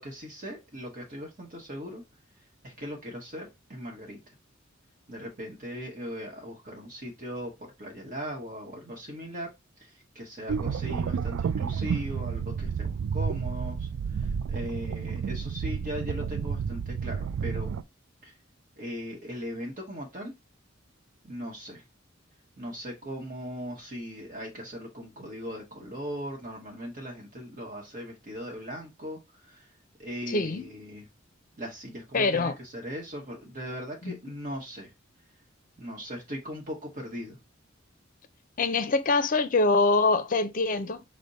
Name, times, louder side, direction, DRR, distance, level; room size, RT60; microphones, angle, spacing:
voice 1, 0.0-2.0 2.6-4.2 5.1-9.5 9.8-17.8 18.2-18.3 18.8-20.3 21.2-21.8 22.6-29.7 30.0-31.1 31.6-34.9 35.8-37.4, equal, 45° right, 1.0 m, -39 dB
sound 1, 10.5-17.8, right 6 dB, 90° right, 0.3 m, -31 dB
voice 2, 30.3-30.6 32.1-32.6 34.0-34.2 38.6-41.0, left 3 dB, 45° left, 0.5 m, -24 dB
5.1 x 2.1 x 3.9 m
head